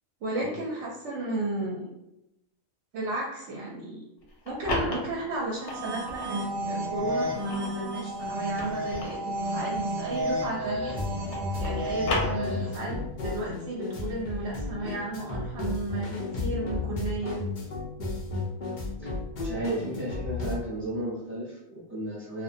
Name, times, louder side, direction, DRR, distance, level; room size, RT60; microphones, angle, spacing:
voice 1, 0.2-1.9 2.9-4.0 4.5-11.2 11.6-17.4, right 2 dB, 65° right, -3 dB, 0.8 m, -33 dB
sound 1, 4.2-6.4 6.9-10.7 10.9-12.9, left 2 dB, 65° left, 0.8 m, -36 dB
Goodness Only Knows (Guitar), 5.5-12.9, right 1 dB, 85° right, 0.4 m, -32 dB
sound 2, 10.9-20.5, left 3 dB, 90° left, 0.4 m, -33 dB
voice 2, 19.4-22.4, right 1 dB, 15° right, -7 dB, 0.5 m, -33 dB
2.3 x 2.1 x 2.5 m, 0.88 s
omnidirectional pair, 1.4 m